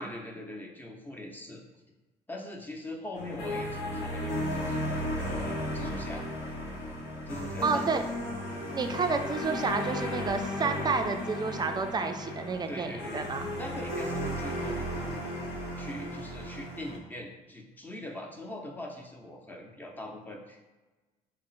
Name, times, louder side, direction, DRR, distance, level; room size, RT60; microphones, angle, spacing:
voice 1, 0.0-1.6 2.3-6.3 7.3-7.9 12.7-15.2 15.8-20.7, left 1 dB, 10° left, 0 dB, 0.7 m, -42 dB
sound 1, 3.1-17.0, left 1 dB, 80° left, 0.8 m, -35 dB
voice 2, 7.6-8.0 8.7-13.5, right 4 dB, 25° right, 6 dB, 0.4 m, -30 dB
3.6 x 2.1 x 3.9 m, 1.2 s
supercardioid pair, 80°, 17 cm